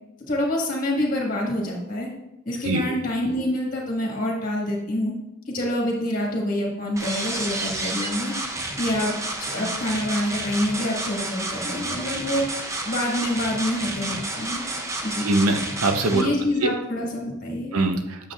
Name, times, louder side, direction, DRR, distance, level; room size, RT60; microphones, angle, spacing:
voice 1, 0.3-2.1 2.4-5.1 5.5-8.3 8.8-12.4 12.8-14.6 15.0-15.3 16.1-17.7, left 1 dB, 40° left, -1 dB, 1.6 m, -26 dB
sound 1, 7.0-16.2, right 2 dB, 15° right, 0.5 m, -30 dB
voice 2, 15.2-16.3 16.6-16.7 17.7-18.3, right 2 dB, 90° right, 5 dB, 0.8 m, -22 dB
8.1 x 7.2 x 2.4 m, 0.90 s
head